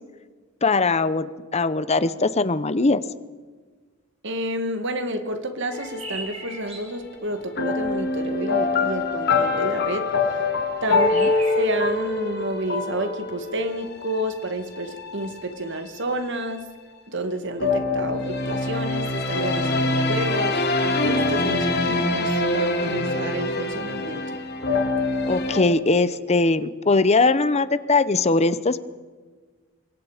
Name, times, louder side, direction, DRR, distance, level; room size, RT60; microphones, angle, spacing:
voice 1, 0.6-3.0 25.3-28.8, left 3 dB, 30° left, 14 dB, 0.8 m, -20 dB
voice 2, 4.2-10.1 10.8-16.7 17.1-24.3, right 1 dB, 60° right, 8 dB, 2.1 m, -30 dB
sound 1, 5.6-7.0 10.8-11.8, right 2 dB, 30° right, 4.2 m, -38 dB
sound 2, 5.7-6.8 7.5-15.7 17.6-25.6, left 3 dB, 50° left, 2.6 m, -24 dB
27.0 x 22.5 x 5.1 m, 1.4 s
head